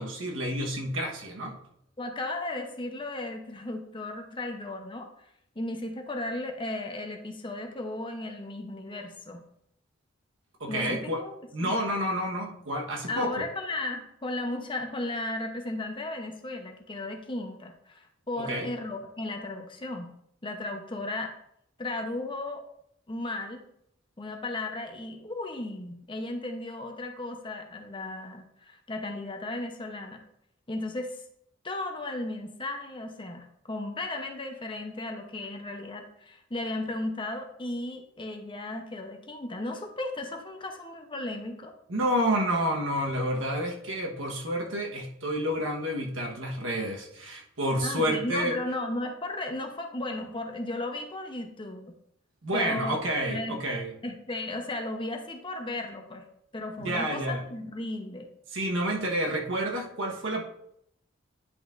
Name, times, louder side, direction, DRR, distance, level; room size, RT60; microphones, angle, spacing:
voice 1, 0.0-1.6 10.6-11.2 11.5-13.5 18.4-18.7 41.9-48.6 52.4-53.9 56.8-57.4 58.5-60.4, equal, 80° right, 1 dB, 1.3 m, -29 dB
voice 2, 2.0-5.1 5.6-9.4 10.7-11.3 11.6-11.7 13.1-20.1 20.4-21.3 21.8-22.6 23.1-23.6 24.2-30.2 30.7-31.2 31.6-41.7 47.8-51.9 52.5-53.0 53.3-53.6 54.0-56.2 56.5-58.3, left 2 dB, 25° left, 4 dB, 0.8 m, -35 dB
10.0 x 5.6 x 2.6 m, 0.73 s
head